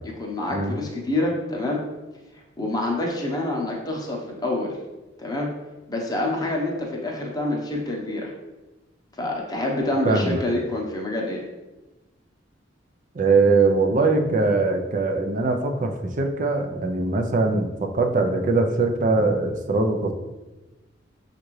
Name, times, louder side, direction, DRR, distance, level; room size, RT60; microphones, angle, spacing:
voice 1, 0.0-1.8 2.6-4.8 5.2-5.5 5.9-8.3 9.2-11.4, left 2 dB, 20° left, -1 dB, 0.8 m, -27 dB
voice 2, 10.0-10.5 13.1-20.1, right 3 dB, 45° right, 4 dB, 0.5 m, -22 dB
6.5 x 2.5 x 3.1 m, 1.1 s
head